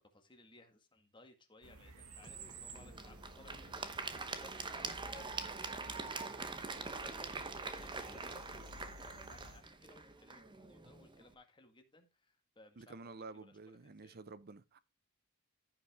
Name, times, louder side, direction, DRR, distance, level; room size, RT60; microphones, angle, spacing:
voice 1, 0.1-8.5 8.7-14.2, left 2 dB, 20° left, 1.8 m, -61 dB
sound 1, 1.6-9.6, right 2 dB, 75° right, 2.1 m, -54 dB
Applause / Crowd, 2.2-11.3, right 4 dB, 20° right, 0.9 m, -44 dB
voice 2, 12.8-14.8, right 3 dB, 45° right, 0.7 m, -50 dB
14.5 x 5.8 x 3.6 m
head